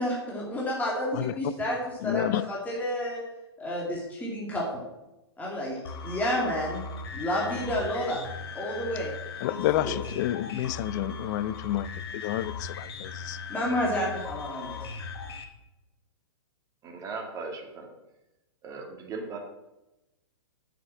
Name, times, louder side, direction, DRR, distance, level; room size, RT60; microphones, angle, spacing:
voice 1, 0.0-1.8 2.0-2.2 2.5-3.2 3.6-4.8 5.4-5.8 6.0-6.9 7.1-8.2 8.5-9.1 9.5-9.9 13.5-14.8, left 1 dB, 10° left, 2.5 m, -30 dB
voice 2, 2.0-2.4 9.4-13.4, left 13 dB, 45° left, 0.5 m, -29 dB
sound 1, 5.8-15.4, left 5 dB, 65° left, 1.5 m, -39 dB
voice 3, 16.8-17.9 18.6-19.4, right 4 dB, 25° right, 2.1 m, -38 dB
7.7 x 6.5 x 7.5 m
hypercardioid pair, 125°, 14 cm